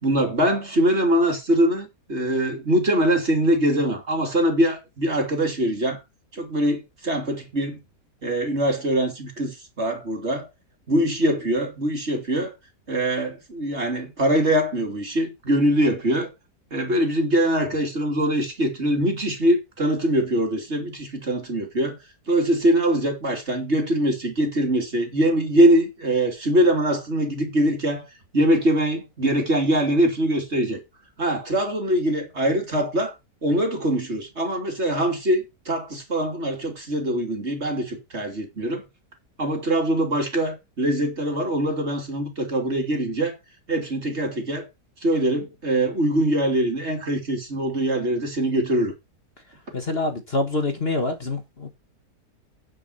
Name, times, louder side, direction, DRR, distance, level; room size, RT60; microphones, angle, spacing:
voice 1, 0.0-6.0 6.3-7.8 8.2-10.5 10.9-12.5 12.9-16.3 16.7-22.0 22.3-28.0 28.3-30.8 31.2-33.1 33.4-38.8 39.4-43.4 43.7-44.6 45.0-48.9, right 1 dB, 40° right, 3.2 m, -23 dB
voice 2, 49.7-51.7, left 2 dB, 40° left, 1.7 m, -26 dB
9.9 x 6.7 x 5.7 m
omnidirectional pair, 1.7 m